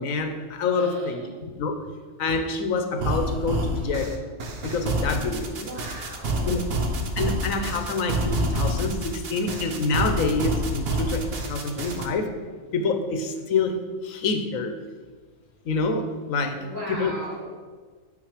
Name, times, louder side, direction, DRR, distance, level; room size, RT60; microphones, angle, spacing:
voice 1, 0.0-1.7 2.2-4.2 4.6-5.6 6.5-6.6 7.2-12.3 12.7-14.8 15.6-16.6 17.0-17.1, left 3 dB, 85° left, 6 dB, 1.3 m, -27 dB
voice 2, 0.6-1.3 5.4-6.6 12.5-12.6 16.5-17.5, equal, 75° right, -7 dB, 3.5 m, -38 dB
sound 1, 3.0-12.1, right 1 dB, 50° right, 1.0 m, -28 dB
8.7 x 6.0 x 5.0 m, 1.5 s
omnidirectional pair, 1.4 m